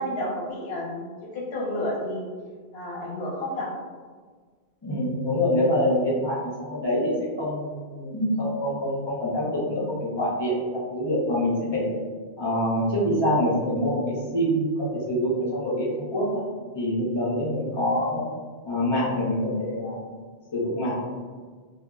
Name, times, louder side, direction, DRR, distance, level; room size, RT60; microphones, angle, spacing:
voice 1, 0.0-2.3 2.7-3.7, left 1 dB, 65° left, -3 dB, 0.9 m, -31 dB
voice 2, 4.8-11.9 12.4-16.4 16.7-18.2 18.6-20.2 20.5-21.0, equal, 30° left, -7 dB, 0.6 m, -25 dB
2.2 x 2.0 x 3.5 m, 1.5 s
omnidirectional pair, 1.1 m